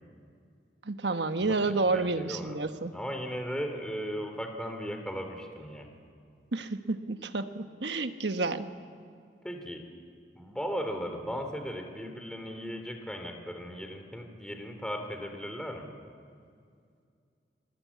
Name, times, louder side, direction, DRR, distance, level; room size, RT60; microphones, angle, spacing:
voice 1, 0.9-2.9 6.5-8.7, right 3 dB, 85° right, 8 dB, 1.2 m, -30 dB
voice 2, 1.4-2.6 2.9-5.9 9.4-9.9 10.3-15.9, equal, 5° left, 5 dB, 3.1 m, -37 dB
27.5 x 20.5 x 8.4 m, 2.3 s
head